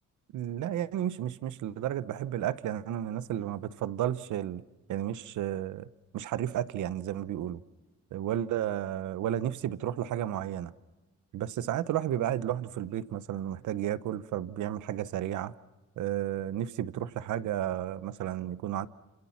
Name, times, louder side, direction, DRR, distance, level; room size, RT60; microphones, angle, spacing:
voice 1, 0.3-4.6 4.9-5.9 6.1-7.6 8.1-10.7 11.3-15.5 16.0-18.9, right 11 dB, 80° right, 1.0 m, -32 dB
27.5 x 26.5 x 5.9 m
cardioid pair, 90°, 30 cm